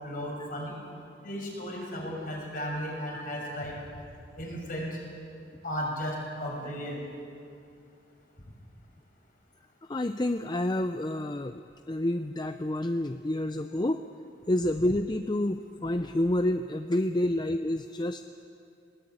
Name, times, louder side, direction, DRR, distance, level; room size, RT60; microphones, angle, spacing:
voice 1, 0.0-0.7 1.2-3.8 4.4-4.9 5.6-7.0, equal, 45° left, -1 dB, 6.2 m, -35 dB
voice 2, 9.9-14.0 14.5-18.2, left 1 dB, 25° left, 9 dB, 0.5 m, -29 dB
20.5 x 19.5 x 8.9 m, 2.5 s
head